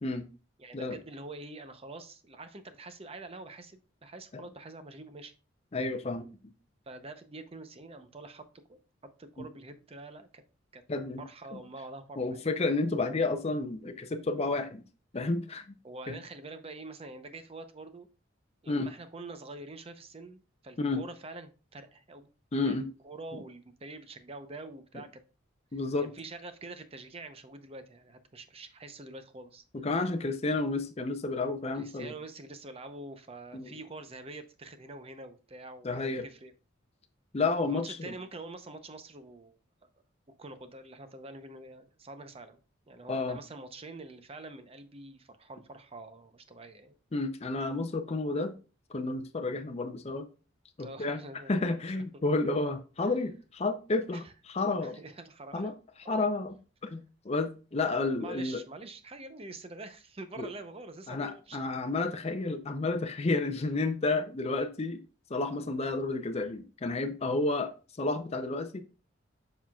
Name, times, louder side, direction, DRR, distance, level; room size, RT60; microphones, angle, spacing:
voice 1, 0.6-5.3 6.9-10.4 10.7-10.8 11.2-12.5 15.8-18.1 18.6-22.3 22.6-25.2 26.0-29.6 31.7-36.5 37.7-39.6 40.4-42.6 42.9-46.9 50.8-51.8 53.0-53.1 54.1-54.3 54.8-55.7 56.0-56.2 58.2-61.7, right 2 dB, 30° right, 0.7 m, -46 dB
voice 2, 5.7-6.3 9.4-9.5 10.9-11.2 11.5-11.6 12.2-14.8 15.1-15.8 16.1-16.2 18.7-18.9 20.8-21.0 22.5-22.9 23.3-23.4 25.7-26.1 29.7-32.1 33.5-33.7 35.8-36.2 37.3-38.1 43.1-43.4 47.1-48.6 48.9-50.3 50.8-51.2 51.5-55.0 55.5-55.7 56.1-58.6 60.4-60.5 61.1-65.0 65.3-67.7 68.0-68.8, left 3 dB, 35° left, 0.6 m, -31 dB
7.1 x 5.7 x 2.3 m
head